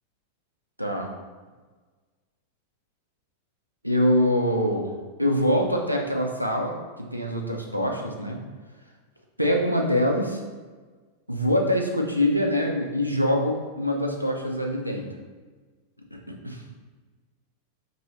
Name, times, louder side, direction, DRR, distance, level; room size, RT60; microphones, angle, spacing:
voice 1, 0.8-1.1 3.8-4.9 5.2-6.8 7.1-8.4 9.4-10.4 11.3-15.1, equal, 90° right, 1 dB, 0.3 m, -24 dB
2.9 x 2.6 x 3.0 m, 1.4 s
figure-of-eight pair, 90°, 0 cm